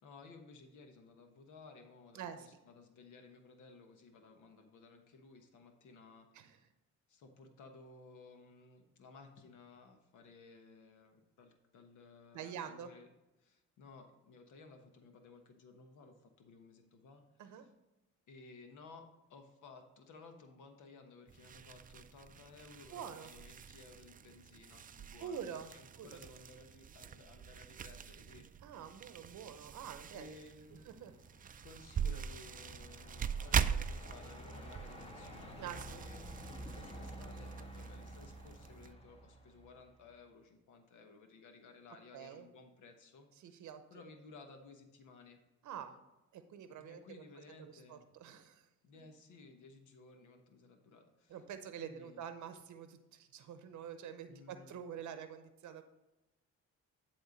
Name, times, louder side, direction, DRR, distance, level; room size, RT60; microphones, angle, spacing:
voice 1, 0.0-6.6 7.1-13.1 13.4-17.7 18.3-28.5 30.1-30.9 31.6-36.3 36.7-43.6 43.9-45.4 46.8-48.0 48.8-51.4 51.8-52.2 54.3-54.8, left 3 dB, 80° left, 5 dB, 1.2 m, -57 dB
voice 2, 2.1-2.5 6.3-6.6 12.3-12.9 17.4-17.7 22.9-23.3 25.2-25.7 26.0-26.1 28.6-30.4 30.8-31.1 35.6-36.1 42.1-42.5 43.4-43.8 45.6-46.0 46.3-47.0 47.4-48.7 51.3-55.8, right 8 dB, 70° right, 9 dB, 0.7 m, -47 dB
sound 1, 21.3-38.9, right 7 dB, 30° right, 0.4 m, -42 dB
Truck, 30.7-40.1, equal, 20° left, 1.4 m, -51 dB
10.5 x 3.6 x 5.1 m, 0.98 s
cardioid pair, 90°, 30 cm